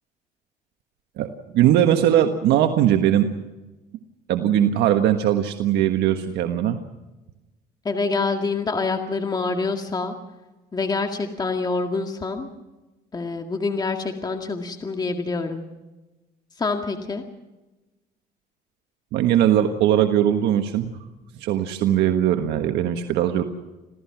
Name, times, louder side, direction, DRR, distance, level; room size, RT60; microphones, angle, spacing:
voice 1, 1.2-3.3 4.3-6.8 19.1-21.0 21.3-23.4, right 11 dB, 80° right, 6 dB, 1.5 m, -20 dB
voice 2, 7.9-10.1 10.7-12.5 13.1-15.6 16.6-17.2, left 4 dB, 25° left, 4 dB, 2.0 m, -26 dB
27.0 x 16.5 x 6.0 m, 1.1 s
cardioid pair, 110°, 17 cm